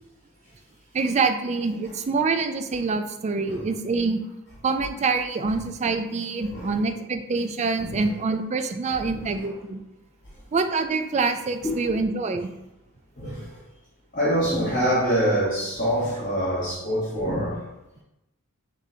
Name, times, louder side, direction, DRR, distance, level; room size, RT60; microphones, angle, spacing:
voice 1, 0.9-4.2 4.6-9.8 10.5-12.5, right 4 dB, 30° right, 8 dB, 0.3 m, -25 dB
voice 2, 6.4-6.7 7.8-8.1 9.0-9.5 11.6-11.9 13.2-13.6 14.1-17.6, equal, 40° left, -7 dB, 1.2 m, -26 dB
6.3 x 2.6 x 2.7 m, 0.92 s
head